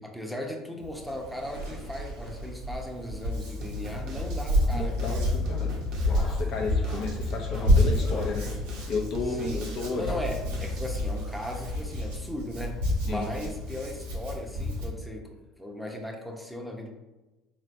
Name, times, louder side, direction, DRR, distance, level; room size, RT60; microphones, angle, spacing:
voice 1, 0.0-5.2 9.3-9.6 10.0-16.9, left 1 dB, ahead, 1 dB, 0.7 m, -37 dB
Hands, 0.8-14.9, left 1 dB, 85° right, 1.0 m, -29 dB
sound 1, 3.6-10.9, left 2 dB, 65° right, 0.8 m, -39 dB
voice 2, 4.7-5.7 6.1-8.5 8.9-10.2 13.1-13.5, left 4 dB, 60° left, 1 dB, 0.7 m, -33 dB
sound 2, 5.9-8.4 9.8-11.1 12.2-12.3 12.5-12.6 13.1-13.2 14.5-14.6 15.9-16.0, left 1 dB, 30° left, 1.0 m, -50 dB
4.1 x 3.2 x 2.6 m, 1.1 s
hypercardioid pair, 70°, 0 cm